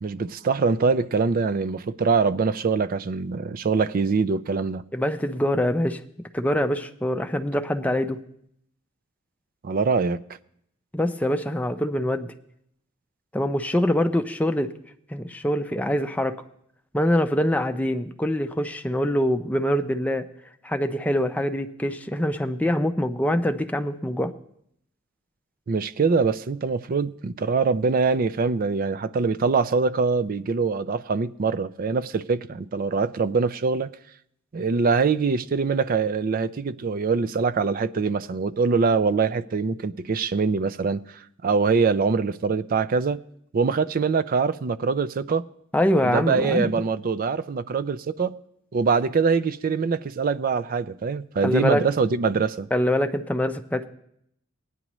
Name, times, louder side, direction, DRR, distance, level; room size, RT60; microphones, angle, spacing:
voice 1, 0.0-4.9 9.6-10.2 25.7-33.9 34.5-43.2 43.5-45.4 46.0-48.4 48.7-52.7, right 4 dB, 45° right, 0.4 m, -23 dB
voice 2, 4.9-6.0 6.3-8.2 10.9-12.3 13.3-14.7 15.1-16.4 16.9-20.2 20.6-24.3 45.7-46.7 51.4-51.8 52.7-53.9, left 1 dB, 5° left, 0.5 m, -24 dB
19.0 x 9.6 x 3.0 m
head